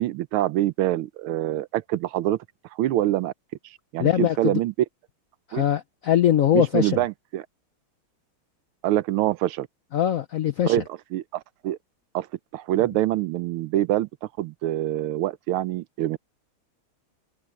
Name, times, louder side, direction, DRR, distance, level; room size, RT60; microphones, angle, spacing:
voice 1, 0.0-2.4 2.8-3.3 3.9-4.7 5.5-5.6 6.5-7.4 8.8-9.7 10.7-10.8 11.1-11.8 12.1-12.3 12.5-14.1 14.4-16.2, right 14 dB, 85° right, 1.5 m, -25 dB
voice 2, 4.0-4.6 5.5-7.0 9.9-10.8, left 11 dB, 75° left, 0.7 m, -22 dB
omnidirectional pair, 2.3 m